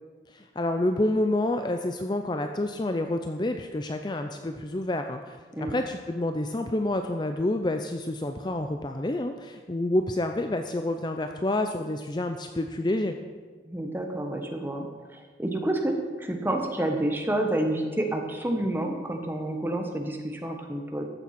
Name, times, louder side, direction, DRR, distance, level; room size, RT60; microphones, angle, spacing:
voice 1, 0.3-13.2, left 1 dB, 25° left, 6 dB, 0.5 m, -28 dB
voice 2, 13.6-14.9 15.1-21.0, right 1 dB, 10° right, 3 dB, 1.2 m, -29 dB
14.0 x 7.1 x 5.8 m, 1.4 s
head